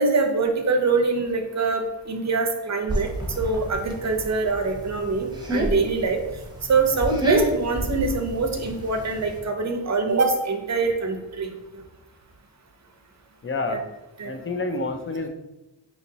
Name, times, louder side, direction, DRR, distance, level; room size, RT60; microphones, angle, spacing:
voice 1, 0.0-3.1 3.4-6.2 6.7-11.5 13.7-13.8 14.2-14.3, right 3 dB, 35° right, 4 dB, 0.7 m, -24 dB
sound 1, 2.9-9.4, right 1 dB, 10° right, 0.9 m, -29 dB
voice 2, 13.4-13.8 14.2-15.3, left 3 dB, 30° left, 6 dB, 0.5 m, -28 dB
5.0 x 2.9 x 2.7 m, 0.97 s
wide cardioid pair, 80°, 46 cm